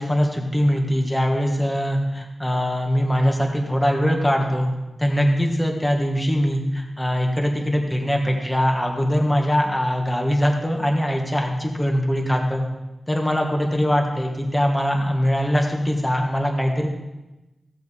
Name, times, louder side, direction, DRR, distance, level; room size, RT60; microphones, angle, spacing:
voice 1, 0.0-4.7 5.0-12.6 13.1-16.9, equal, 10° left, 1 dB, 1.6 m, -22 dB
15.5 x 7.7 x 3.7 m, 1.0 s
wide cardioid pair, 110°, 0 cm